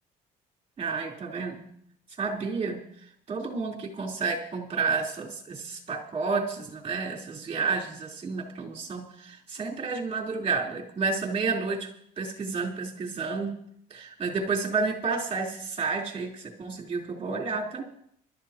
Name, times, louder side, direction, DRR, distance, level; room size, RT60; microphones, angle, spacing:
voice 1, 0.8-1.6 2.2-2.8 3.3-11.9 12.2-13.6 13.9-17.8, right 4 dB, 35° right, -1 dB, 4.1 m, -30 dB
24.5 x 13.0 x 3.1 m, 0.66 s
cardioid pair, 110°, 17 cm